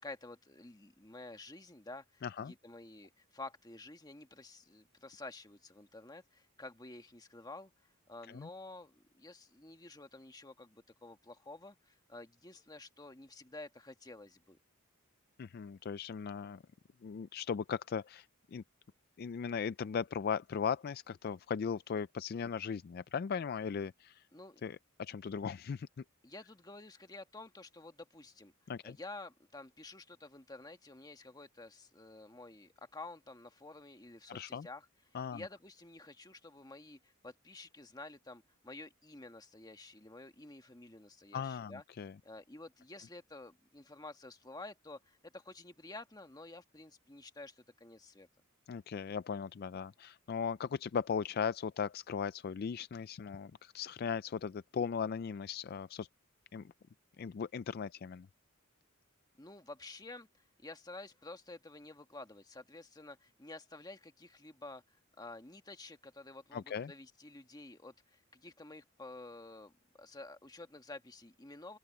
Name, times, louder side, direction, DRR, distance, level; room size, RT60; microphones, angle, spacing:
voice 1, 0.0-7.7 8.1-14.6 24.3-24.6 26.2-28.5 28.8-34.8 35.3-41.8 42.2-48.3 59.4-60.3 60.6-64.8 65.2-69.7 70.0-71.8, left 2 dB, 20° left, 1.4 m, -50 dB
voice 2, 2.2-2.5 8.3-8.5 15.4-16.6 17.0-18.6 19.2-24.2 24.6-25.9 28.7-29.0 34.3-34.7 35.1-35.5 41.3-42.1 48.7-56.1 56.5-56.6 57.2-58.3 66.5-66.9, left 6 dB, 45° left, 0.3 m, -38 dB
open air
head